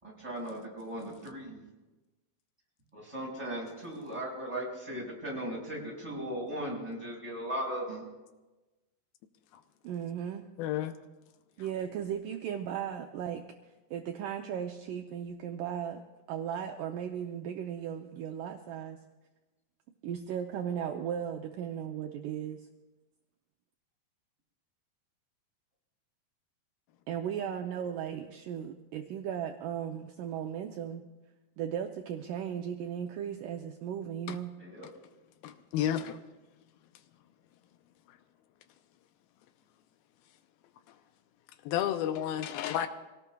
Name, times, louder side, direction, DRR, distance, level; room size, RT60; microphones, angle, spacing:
voice 1, 0.0-1.6 2.9-8.0 34.6-34.9, right 1 dB, 10° right, -3 dB, 4.6 m, -37 dB
voice 2, 9.8-10.5 11.6-13.4 13.9-16.0 16.3-19.0 20.0-22.6 27.1-31.0 31.6-34.5, right 9 dB, 75° right, 3 dB, 2.0 m, -36 dB
voice 3, 10.6-10.9 34.3-34.4 35.4-36.2 41.7-42.9, left 11 dB, 85° left, 9 dB, 2.5 m, -31 dB
26.0 x 17.5 x 2.3 m, 1.1 s
omnidirectional pair, 4.3 m